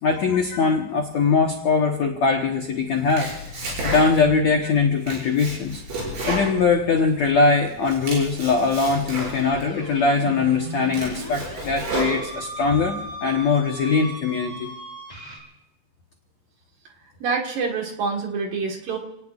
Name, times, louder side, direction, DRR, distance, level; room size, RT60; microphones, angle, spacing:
voice 1, 0.0-5.8 6.3-14.7, left 4 dB, 70° left, 1 dB, 1.7 m, -21 dB
Domestic sounds home sounds, 2.9-4.4 4.8-7.3 7.7-9.7 10.2-10.3 10.7-12.7, right 1 dB, 80° right, 8.5 m, -31 dB
sound 1, 9.3-15.4, equal, 10° right, 3.8 m, -37 dB
voice 2, 17.2-19.0, right 4 dB, 60° right, 1 dB, 2.9 m, -26 dB
30.0 x 19.0 x 2.5 m, 0.82 s
omnidirectional pair, 5.1 m